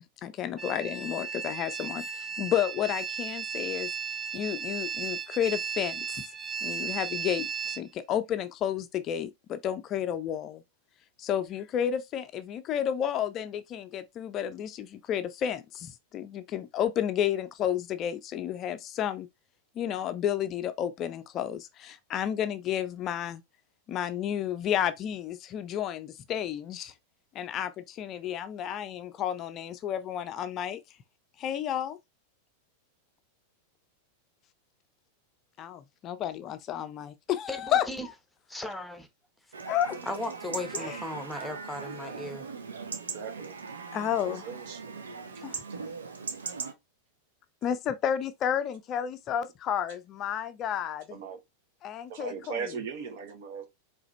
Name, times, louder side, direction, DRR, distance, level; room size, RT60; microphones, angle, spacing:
voice 1, 0.2-3.9 4.3-6.3 6.6-10.6 11.2-19.3 19.8-23.4 23.9-26.9 27.3-30.8 31.4-32.0 35.6-37.9 39.7-40.0 40.8-41.0 43.9-44.5 45.4-45.6 47.6-51.2 51.8-52.6, left 10 dB, 35° left, 0.5 m, -31 dB
sound 1, 0.6-7.8, right 6 dB, 15° right, 0.6 m, -35 dB
voice 2, 37.5-38.1 38.5-39.1 40.1-42.5, left 2 dB, 5° left, 1.0 m, -36 dB
Chatter / Livestock farm animals working animals / Chirp tweet, 39.5-46.7, right 5 dB, 70° right, 0.8 m, -39 dB
voice 3, 43.1-43.6 44.2-44.9 51.1-51.4 52.1-53.7, right 6 dB, 50° right, 1.1 m, -38 dB
4.9 x 3.3 x 3.1 m
figure-of-eight pair, 90°, 0 cm